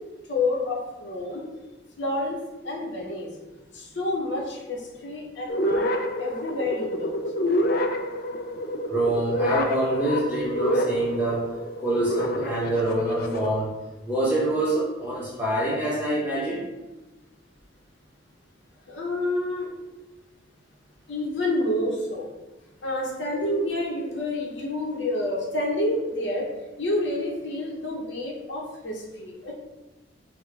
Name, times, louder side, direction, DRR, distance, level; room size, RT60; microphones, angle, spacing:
voice 1, 0.3-1.4 2.0-3.3 3.7-5.9 6.2-7.1 18.9-19.7 21.1-22.3 22.8-26.5 26.8-29.5, left 1 dB, 70° left, -2 dB, 0.9 m, -28 dB
sound 1, 5.5-13.5, equal, 50° left, 0.4 m, -28 dB
voice 2, 8.9-11.5 11.8-13.7 14.0-16.6 23.3-23.5, right 1 dB, 10° right, -7 dB, 1.5 m, -25 dB
6.1 x 2.2 x 3.3 m, 1.1 s
head